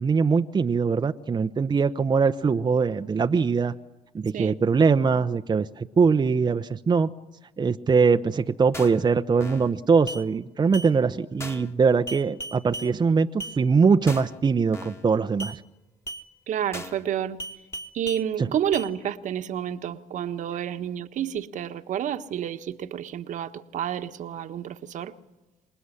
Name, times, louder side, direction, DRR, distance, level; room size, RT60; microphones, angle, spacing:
voice 1, 0.0-3.7 4.1-7.1 7.6-15.6 18.4-18.5, right 5 dB, 30° right, 0.8 m, -22 dB
sound 1, 8.7-9.0 9.4-9.7 10.1-10.2 10.7-10.9 11.4-11.7 12.1-12.9 13.4-13.6 14.1-14.4 14.7-15.0 15.4-15.6 16.1-16.2 16.7-17.0 17.4-18.2 18.7-18.9, equal, 20° left, 2.2 m, -36 dB
voice 2, 16.5-17.4 17.9-25.1, right 10 dB, 60° right, 1.4 m, -30 dB
26.0 x 20.0 x 9.9 m
supercardioid pair, 70°, 14 cm